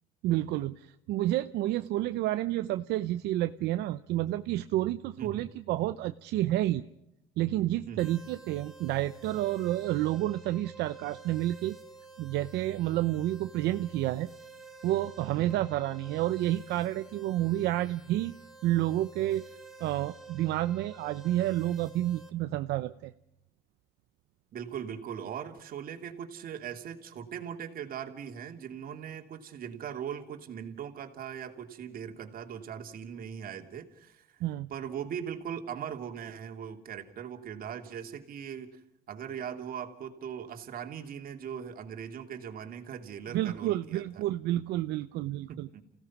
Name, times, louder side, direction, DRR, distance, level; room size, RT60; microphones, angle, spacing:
voice 1, 0.2-6.9 7.4-11.8 12.2-14.3 14.8-18.3 18.6-19.5 19.8-23.1 34.4-34.7 43.3-45.7, right 14 dB, 85° right, 10 dB, 0.7 m, -30 dB
voice 2, 5.2-5.5 7.9-8.2 15.4-15.7 24.5-34.4 34.7-38.8 39.1-44.2 45.5-45.8, right 8 dB, 60° right, 4 dB, 2.9 m, -40 dB
sound 1, 8.0-22.3, right 3 dB, ahead, 3.4 m, -51 dB
29.0 x 17.0 x 6.0 m, 0.86 s
cardioid pair, 110°, 17 cm